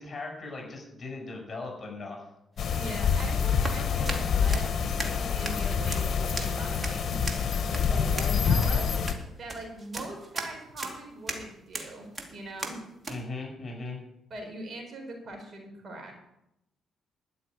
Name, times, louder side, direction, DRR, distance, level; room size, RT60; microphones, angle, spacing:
voice 1, 0.0-2.2 13.1-14.0, left 3 dB, 35° left, 0 dB, 6.7 m, -38 dB
sound 1, 2.6-9.1, left 6 dB, 55° left, 1.4 m, -27 dB
sound 2, 2.6-13.2, right 2 dB, 30° right, 2.5 m, -39 dB
voice 2, 2.7-4.7 5.0-7.3 7.9-8.9 9.4-12.8 14.3-16.2, right 2 dB, 50° right, 3 dB, 4.6 m, -41 dB
12.5 x 6.5 x 9.6 m, 0.83 s
cardioid pair, 90°, 0 cm